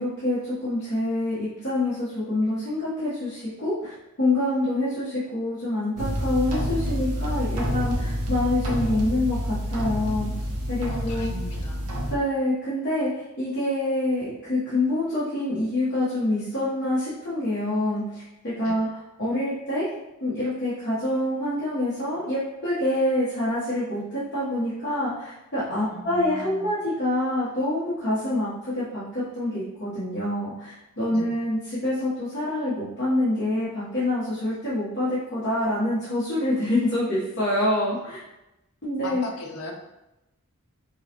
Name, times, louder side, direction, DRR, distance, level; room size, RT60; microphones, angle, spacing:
voice 1, 0.0-10.3 10.7-11.3 12.1-18.9 19.2-19.9 20.2-38.2 38.8-39.2, left 1 dB, 50° left, -11 dB, 1.1 m, -26 dB
sound 1, 6.0-12.2, equal, 85° right, 0.8 m, -28 dB
voice 2, 10.8-11.9 18.6-18.8 25.9-26.7 31.1-31.4 39.0-39.7, left 2 dB, 85° left, 1 dB, 0.7 m, -38 dB
5.3 x 2.2 x 2.9 m, 0.94 s
head